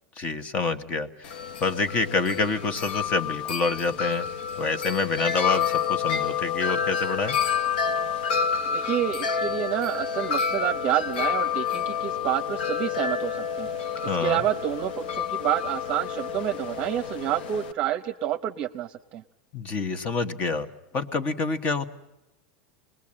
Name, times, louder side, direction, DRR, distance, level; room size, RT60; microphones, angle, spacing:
voice 1, 0.2-1.3 1.6-4.3 4.6-7.4 14.0-14.4 19.5-20.7 20.9-21.9, left 4 dB, 30° left, 11 dB, 1.3 m, -27 dB
Wind chime, 1.2-17.7, left 7 dB, 85° left, 1.1 m, -29 dB
voice 2, 8.6-13.9 14.2-19.2, right 12 dB, 35° right, 6 dB, 0.9 m, -28 dB
27.5 x 21.0 x 8.7 m, 0.99 s
supercardioid pair, 160°, 5 cm